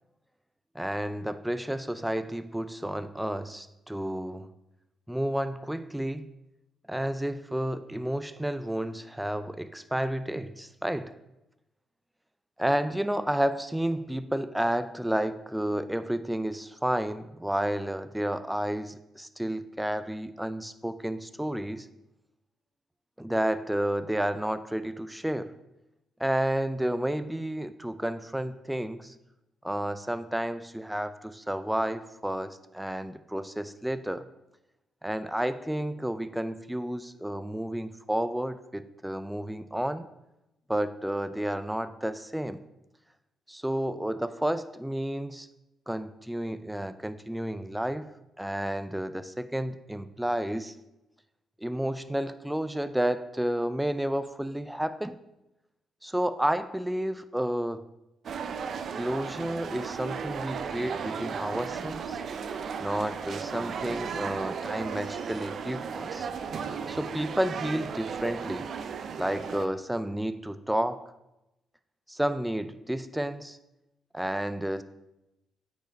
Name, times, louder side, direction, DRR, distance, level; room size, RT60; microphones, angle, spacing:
voice 1, 0.7-4.5 5.1-6.3 6.9-11.1 12.6-21.9 23.2-25.6 26.2-29.1 29.6-34.3 35.0-40.1 40.7-42.6 43.5-45.5 45.9-48.1 48.4-50.7 51.6-55.2 56.0-57.9 58.9-62.2 62.8-66.3 66.9-68.7 69.2-71.0 72.1-73.6 74.1-74.8, right 1 dB, 5° right, 0.4 m, -31 dB
sound 1, 58.2-69.7, right 6 dB, 55° right, 0.5 m, -35 dB
8.8 x 5.2 x 4.6 m
cardioid pair, 90°, 0 cm